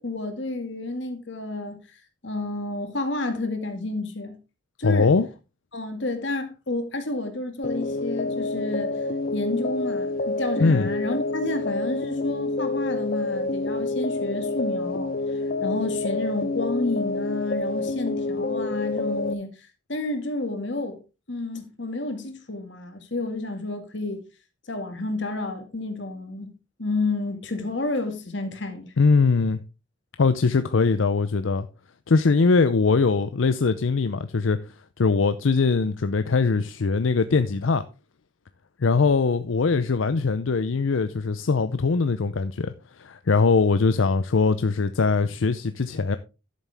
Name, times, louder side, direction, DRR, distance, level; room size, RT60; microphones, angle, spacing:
voice 1, 0.0-1.8 2.2-4.3 4.8-5.1 5.7-8.9 9.3-15.1 15.6-19.5 19.9-21.0 21.3-24.2 24.7-26.5 26.8-28.9, left 2 dB, 65° left, 2.1 m, -30 dB
voice 2, 4.8-5.3 10.6-10.9 29.0-29.6 30.2-31.7 32.1-34.6 35.0-37.8 38.8-46.2, left 4 dB, 85° left, 0.6 m, -21 dB
sound 1, 7.6-19.3, left 2 dB, 50° left, 0.6 m, -28 dB
12.5 x 7.3 x 3.5 m
head